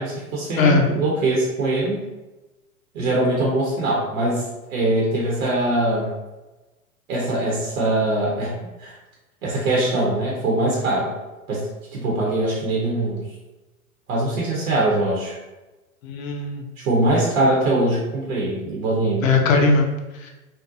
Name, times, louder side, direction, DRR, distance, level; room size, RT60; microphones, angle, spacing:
voice 1, 0.0-2.0 2.9-4.4 4.7-6.1 7.1-8.5 8.8-8.9 9.4-11.1 11.5-13.2 14.1-15.4 16.8-19.3, right 1 dB, 70° right, -3 dB, 0.8 m, -22 dB
voice 2, 0.6-0.9 16.0-16.7 19.2-20.3, left 3 dB, 65° left, 3 dB, 0.6 m, -19 dB
2.5 x 2.1 x 2.5 m, 1.1 s
hypercardioid pair, 100°, 43 cm